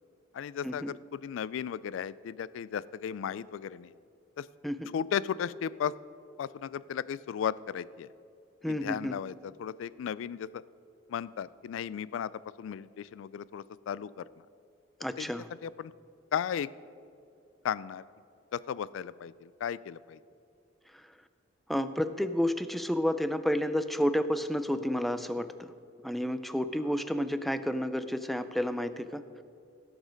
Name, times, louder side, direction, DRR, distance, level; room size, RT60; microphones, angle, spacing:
voice 1, 0.3-3.9 4.4-4.5 4.9-5.9 6.4-8.1 8.7-10.5 11.1-12.3 12.6-14.1 15.2-15.3 15.6-15.9 16.3-16.7 17.6-18.0 18.5-20.2, left 8 dB, 75° left, 20 dB, 0.3 m, -35 dB
voice 2, 8.6-9.1 15.0-15.5 21.7-25.7 26.0-29.2, equal, ahead, 11 dB, 0.3 m, -30 dB
17.0 x 6.2 x 5.1 m, 2.5 s
head